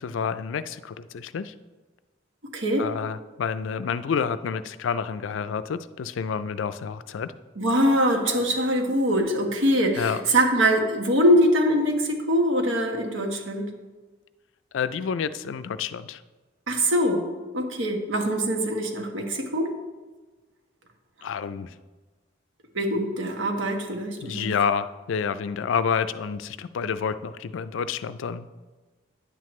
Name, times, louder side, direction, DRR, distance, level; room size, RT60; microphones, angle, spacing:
voice 1, 0.0-1.5 2.8-7.3 10.0-10.2 14.7-16.2 21.2-21.7 24.2-28.5, left 6 dB, 75° left, 13 dB, 0.4 m, -29 dB
voice 2, 2.5-2.9 7.6-13.7 16.7-17.3 17.5-19.7 22.7-24.5, equal, 85° right, 3 dB, 1.2 m, -23 dB
9.9 x 7.6 x 3.1 m, 1.3 s
head